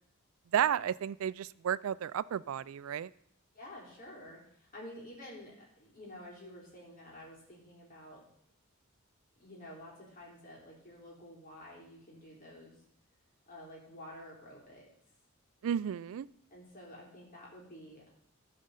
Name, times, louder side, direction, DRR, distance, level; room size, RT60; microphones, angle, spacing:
voice 1, 0.5-3.1 15.6-16.3, right 9 dB, 70° right, 20 dB, 0.3 m, -32 dB
voice 2, 3.5-8.2 9.4-12.8 13.5-14.8 16.5-18.1, left 1 dB, 40° left, -4 dB, 3.6 m, -50 dB
13.5 x 5.1 x 5.6 m, 0.68 s
head